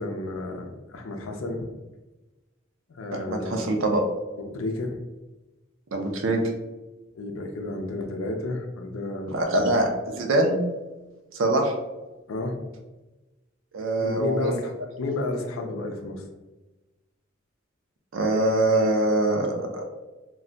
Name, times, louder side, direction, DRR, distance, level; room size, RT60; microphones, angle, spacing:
voice 1, 0.0-1.7 2.9-3.7 4.4-5.0 7.1-9.7 12.3-12.6 14.0-14.7 15.0-16.2, left 2 dB, 90° left, 4 dB, 0.5 m, -31 dB
voice 2, 3.1-4.0 5.9-6.4 9.3-10.6 11.3-11.7 13.7-14.5 18.1-19.8, right 2 dB, 75° right, 3 dB, 0.5 m, -23 dB
2.3 x 2.1 x 3.7 m, 1.1 s
head